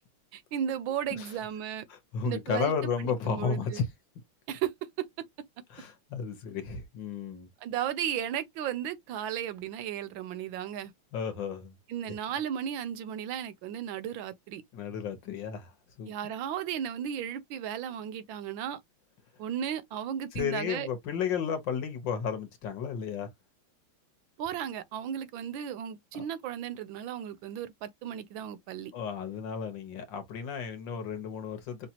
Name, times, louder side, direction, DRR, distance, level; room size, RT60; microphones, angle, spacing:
voice 1, 0.3-1.9 2.2-3.8 4.5-4.7 5.0-5.1 7.6-10.9 11.9-14.6 16.1-18.8 19.4-20.9 24.4-28.9, right 9 dB, 75° right, 1.2 m, -35 dB
voice 2, 1.9-3.9 5.7-7.5 11.1-11.7 14.7-15.7 16.0-16.1 20.3-23.3 26.1-26.2 28.9-31.9, left 6 dB, 60° left, 1.5 m, -33 dB
5.9 x 2.4 x 2.8 m
omnidirectional pair, 2.4 m